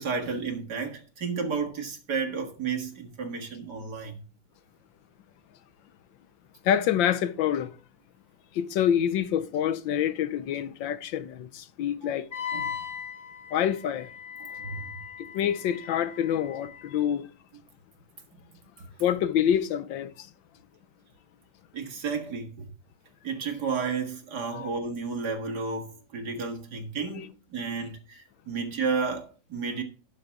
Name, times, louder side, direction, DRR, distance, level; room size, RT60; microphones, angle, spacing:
voice 1, 0.0-4.2 12.0-12.1 12.5-12.8 14.4-15.0 18.8-18.9 21.7-22.7 23.2-27.2 27.5-29.8, right 5 dB, 60° right, 2.2 m, -32 dB
voice 2, 6.6-7.7 8.5-12.3 13.5-14.1 15.2-17.3 19.0-20.3 24.5-24.7 27.0-27.3, left 9 dB, 80° left, 1.4 m, -27 dB
Wind instrument woodwind instrument, 12.3-16.9, left 7 dB, 40° left, 3.8 m, -39 dB
12.0 x 7.0 x 3.6 m
omnidirectional pair, 2.1 m